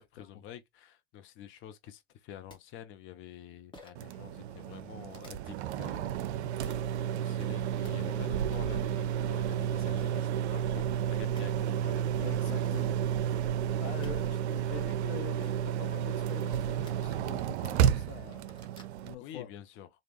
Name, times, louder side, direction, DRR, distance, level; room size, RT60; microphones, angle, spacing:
voice 1, 0.0-6.2 6.5-6.7 7.1-12.0 19.2-19.9, left 10 dB, 35° left, 0.7 m, -48 dB
sound 1, 2.2-2.3 2.5-2.6 3.7-4.1 5.1-5.3 6.6-6.9 7.5-7.9 10.0-10.1 10.9-11.0 11.2-11.4 12.3-12.4 12.6-12.9 13.7-14.1 15.4-15.7 16.7-16.9 17.6-17.7 18.1-19.0, left 2 dB, 15° left, 1.4 m, -52 dB
sound 2, 3.9-19.1, right 9 dB, 75° right, 0.5 m, -31 dB
voice 2, 7.9-8.3 12.2-13.0 13.2-13.4 13.8-18.6 19.0-19.5, left 11 dB, 75° left, 0.8 m, -45 dB
3.4 x 2.4 x 3.0 m
hypercardioid pair, 100°, 34 cm